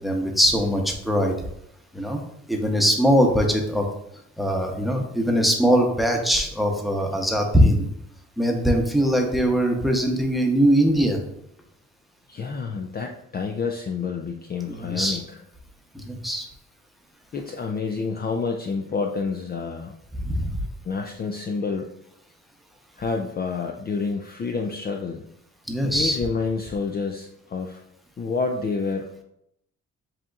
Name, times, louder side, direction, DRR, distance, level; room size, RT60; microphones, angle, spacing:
voice 1, 0.0-1.3 1.9-2.2 2.5-3.9 4.4-7.9 8.4-11.2 14.7-15.2 16.1-16.4 20.1-20.6 25.7-26.2, equal, ahead, 2 dB, 0.8 m, -21 dB
voice 2, 12.3-15.4 17.3-19.9 20.8-21.9 23.0-25.2 25.8-27.8 28.2-29.1, left 4 dB, 30° left, 3 dB, 0.4 m, -28 dB
7.6 x 2.9 x 2.4 m, 0.76 s
cardioid pair, 90°, 30 cm